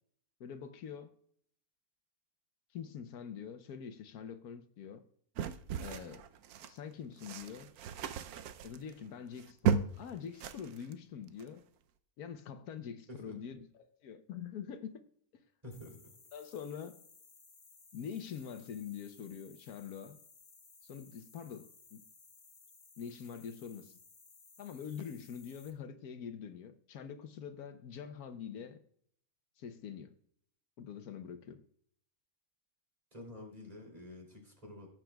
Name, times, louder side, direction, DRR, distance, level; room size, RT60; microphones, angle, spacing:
voice 1, 0.4-1.1 2.7-5.0 5.8-6.2 6.7-7.7 8.6-11.6 12.2-14.9 15.3-15.4 16.3-17.0 17.9-20.2 20.8-22.0 23.0-23.9 24.6-28.8 29.6-30.1 30.8-31.6, left 7 dB, 85° left, 1.3 m, -45 dB
sound 1, 5.4-6.8 7.2-10.1 10.3-10.9 11.3-11.5, right 7 dB, 85° right, 1.1 m, -35 dB
voice 2, 15.6-16.0 33.1-34.9, left 1 dB, 25° right, 3.0 m, -49 dB
sound 2, 15.7-25.7, left 4 dB, 65° left, 1.9 m, -60 dB
17.5 x 7.6 x 2.3 m
omnidirectional pair, 1.5 m